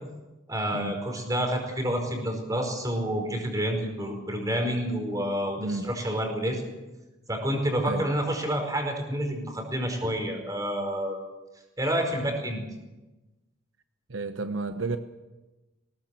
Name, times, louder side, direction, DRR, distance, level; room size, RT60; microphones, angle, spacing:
voice 1, 0.5-6.6 7.3-11.2 11.8-12.6, equal, 20° right, 3 dB, 5.0 m, -29 dB
voice 2, 5.6-5.9 7.9-8.0 14.1-15.0, right 3 dB, 75° right, 9 dB, 1.0 m, -31 dB
21.0 x 18.5 x 7.6 m, 1.1 s
head